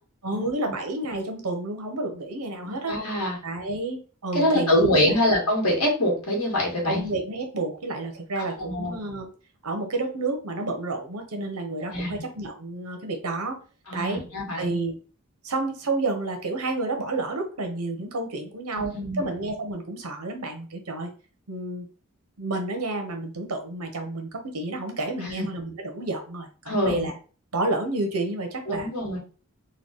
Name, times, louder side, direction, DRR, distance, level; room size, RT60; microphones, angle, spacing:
voice 1, 0.2-3.0 3.4-5.2 6.8-9.3 9.6-13.6 13.9-14.2 14.5-15.0 15.4-21.1 21.5-21.9 22.4-27.1 27.5-28.9, right 2 dB, 90° right, 5 dB, 0.9 m, -30 dB
voice 2, 2.6-3.4 4.3-7.0 8.4-8.9 11.9-12.2 13.9-14.8 18.7-19.3 25.2-25.4 26.7-27.1 28.7-29.2, left 1 dB, 75° left, -2 dB, 1.7 m, -25 dB
3.8 x 2.3 x 3.5 m, 0.37 s
head